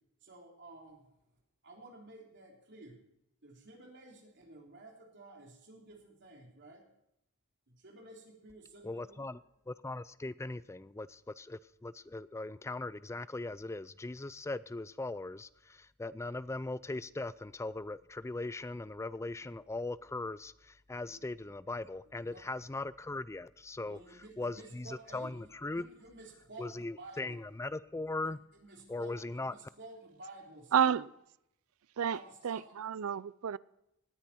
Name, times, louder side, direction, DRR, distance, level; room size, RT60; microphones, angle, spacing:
voice 1, 0.2-1.0 1.6-3.0 3.4-6.9 7.7-9.2 21.0-21.2 22.2-22.5 23.8-27.4 28.0-28.1 28.6-30.9 32.1-32.8, right 2 dB, 55° right, 3.4 m, -53 dB
voice 2, 8.8-25.9 26.6-28.4 28.9-29.5, left 2 dB, 15° left, 0.4 m, -39 dB
voice 3, 30.7-31.1 32.0-32.2 32.4-33.6, right 8 dB, 90° right, 0.4 m, -30 dB
18.5 x 9.9 x 4.3 m
head